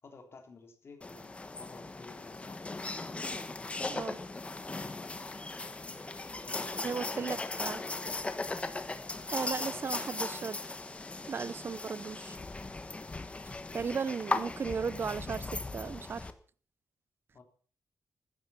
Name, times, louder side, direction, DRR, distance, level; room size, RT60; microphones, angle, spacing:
voice 1, 0.0-2.6 6.4-7.3 8.9-10.3 13.3-14.1 17.3-17.4, left 4 dB, 40° left, 3.7 m, -53 dB
sound 1, 1.0-16.3, left 3 dB, 20° left, 1.3 m, -38 dB
voice 2, 6.8-7.8 9.3-10.6 11.2-12.4 13.7-16.3, right 5 dB, 35° right, 0.6 m, -36 dB
16.0 x 13.0 x 5.8 m
wide cardioid pair, 175°, 6 cm